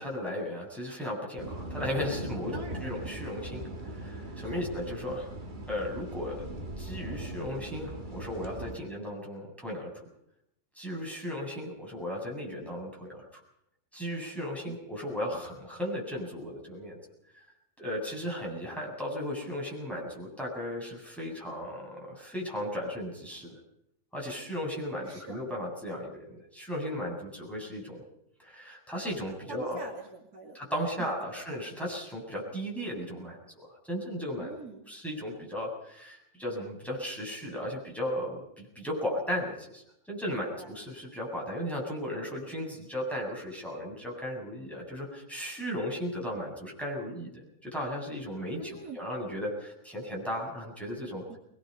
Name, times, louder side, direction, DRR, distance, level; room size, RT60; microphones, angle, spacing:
voice 1, 0.0-5.3 5.7-6.5 6.8-9.9 10.7-13.4 13.9-17.0 17.3-17.4 17.8-23.5 24.1-28.0 28.4-29.9 30.5-34.5 34.9-51.2, equal, ahead, -2 dB, 7.8 m, -36 dB
sound 1, 1.4-8.8, right 1 dB, 30° right, 1.8 m, -39 dB
voice 2, 2.5-2.9 4.4-4.7 14.7-14.8 25.0-25.4 29.5-30.6 31.0-31.4 34.4-34.8 40.3-40.8 48.6-49.0 51.3-51.4, right 3 dB, 60° right, 0 dB, 3.2 m, -45 dB
24.0 x 21.5 x 5.6 m, 0.77 s
omnidirectional pair, 1.8 m